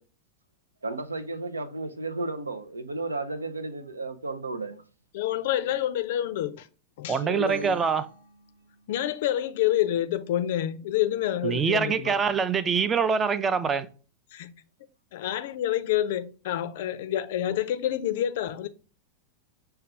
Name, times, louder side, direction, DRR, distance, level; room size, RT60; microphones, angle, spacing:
voice 1, 0.8-4.8 7.2-7.8 11.3-11.6 12.0-12.2, right 2 dB, 75° right, 0.5 m, -33 dB
voice 2, 5.1-6.7 7.0-7.2 8.9-12.1 14.3-14.5 15.1-18.7, left 12 dB, 55° left, 0.4 m, -28 dB
voice 3, 7.1-8.0 11.4-13.9, right 6 dB, 20° right, 0.4 m, -24 dB
sound 1, 7.5-9.1, right 3 dB, 60° right, 0.9 m, -46 dB
6.4 x 2.2 x 3.3 m
figure-of-eight pair, 90°, 0 cm